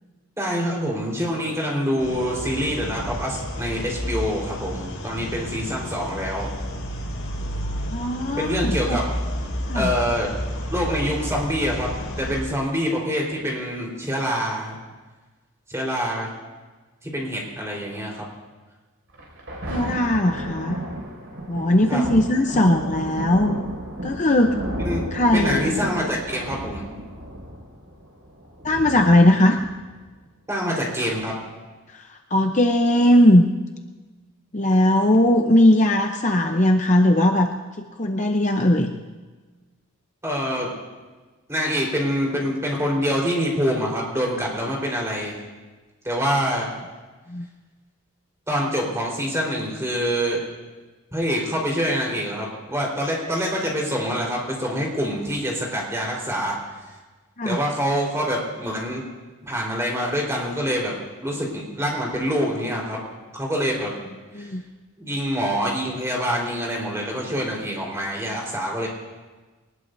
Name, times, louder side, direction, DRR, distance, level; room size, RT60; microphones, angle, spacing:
voice 1, 0.4-6.5 8.4-9.1 9.7-10.3 10.7-11.9 12.2-14.8 15.7-16.3 17.0-18.2 21.9-22.0 24.8-25.0 25.3-26.9 30.5-31.3 40.2-40.7 41.5-45.3 46.0-46.7 48.5-50.4 51.1-56.6 57.4-59.0 59.4-63.0 63.3-63.9 64.3-64.5 65.0-68.9, equal, 15° right, -2 dB, 4.1 m, -25 dB
sound 1, 2.0-12.4, equal, 80° left, 5.4 m, -31 dB
voice 2, 7.9-9.0 9.7-9.9 19.7-20.8 21.5-23.6 24.0-24.6 25.1-25.7 28.6-29.6 31.9-33.4 34.5-37.5 38.0-38.9 47.3-47.5 57.4-57.6 64.3-64.6, left 1 dB, 35° left, 4 dB, 0.7 m, -19 dB
Thunder, 19.1-30.1 30.8-30.9, right 1 dB, 60° right, 5.9 m, -32 dB
22.5 x 20.0 x 2.7 m, 1.3 s
head